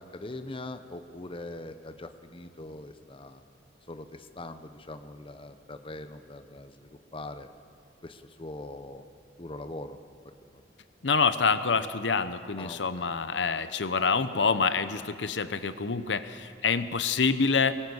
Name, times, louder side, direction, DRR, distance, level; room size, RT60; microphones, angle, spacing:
voice 1, 0.0-3.4 3.9-7.5 8.0-9.1 9.4-10.0 10.4-10.6 12.6-13.1, left 2 dB, 30° left, 9 dB, 0.9 m, -42 dB
voice 2, 11.0-17.7, left 5 dB, 85° left, 12 dB, 0.9 m, -26 dB
23.0 x 19.5 x 8.1 m, 2.3 s
head